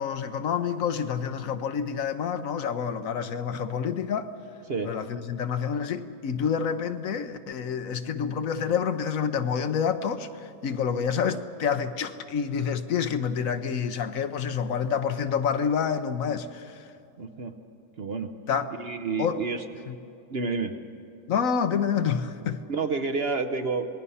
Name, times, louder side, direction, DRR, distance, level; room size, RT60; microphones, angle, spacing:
voice 1, 0.0-4.3 4.9-16.7 18.5-18.7 19.2-19.4 21.3-22.6, left 7 dB, 65° left, 1.1 m, -28 dB
voice 2, 17.2-17.6 18.0-18.3 18.8-19.6 20.3-20.7 22.7-23.9, right 4 dB, 50° right, 0.9 m, -29 dB
26.5 x 19.5 x 5.6 m
omnidirectional pair, 1.6 m